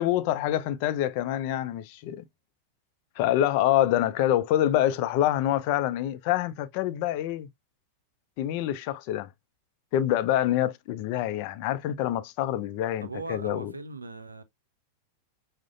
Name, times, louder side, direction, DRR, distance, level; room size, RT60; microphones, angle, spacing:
voice 1, 0.0-2.2 3.2-7.5 8.4-9.3 9.9-13.7, left 12 dB, 45° left, 0.4 m, -26 dB
voice 2, 13.0-14.4, right 3 dB, 80° right, 0.5 m, -39 dB
6.0 x 2.1 x 2.4 m
figure-of-eight pair, 90°, 0 cm